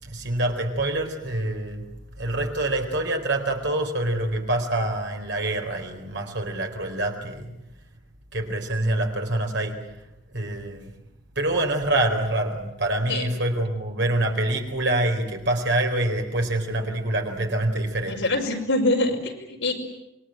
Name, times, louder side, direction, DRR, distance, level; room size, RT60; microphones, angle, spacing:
voice 1, 0.0-1.9 2.2-7.5 8.3-9.8 10.3-10.9 11.4-18.3, right 1 dB, 60° right, 3 dB, 4.3 m, -26 dB
voice 2, 18.1-19.7, left 2 dB, 70° left, 1 dB, 5.3 m, -24 dB
26.5 x 22.5 x 9.0 m, 0.90 s
head